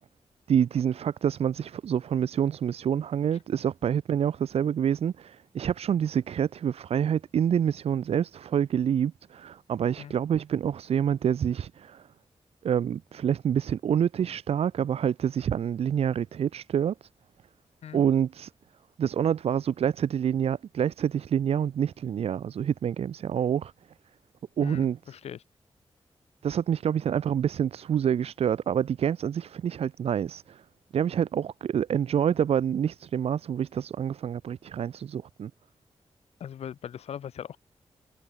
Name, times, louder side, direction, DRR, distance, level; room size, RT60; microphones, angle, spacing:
voice 1, 0.5-12.0 12.6-16.9 17.9-18.5 19.0-23.7 24.6-25.1 26.4-30.6 30.9-35.5, right 8 dB, 70° right, 0.4 m, -27 dB
voice 2, 24.6-25.4 36.4-37.6, left 9 dB, 80° left, 0.4 m, -39 dB
cardioid pair, 75°, 11 cm